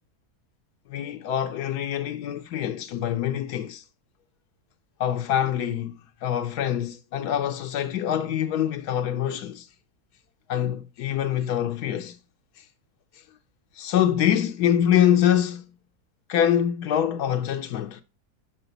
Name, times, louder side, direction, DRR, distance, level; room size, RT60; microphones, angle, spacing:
voice 1, 0.9-3.8 5.0-9.7 10.5-12.2 13.8-15.6 16.3-18.0, left 10 dB, 85° left, 1.2 m, -25 dB
6.9 x 5.8 x 3.9 m
omnidirectional pair, 1.7 m